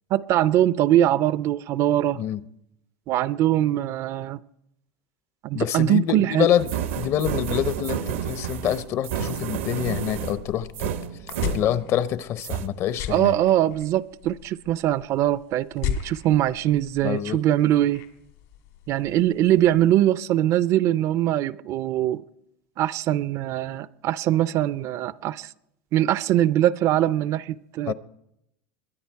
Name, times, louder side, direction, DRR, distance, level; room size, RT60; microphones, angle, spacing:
voice 1, 0.1-2.2 3.1-4.4 5.4-6.5 13.1-18.1 18.9-22.2 22.8-25.5 25.9-27.9, right 13 dB, 50° right, 0.4 m, -22 dB
voice 2, 5.5-10.9 11.5-13.3 17.0-17.4 27.9-28.0, left 11 dB, 45° left, 0.7 m, -26 dB
sound 1, 6.6-12.2 12.4-12.7, right 9 dB, 85° right, 1.0 m, -30 dB
sound 2, 9.8-20.0, left 9 dB, 75° left, 2.1 m, -38 dB
22.0 x 9.6 x 4.6 m
supercardioid pair, 120°, 6 cm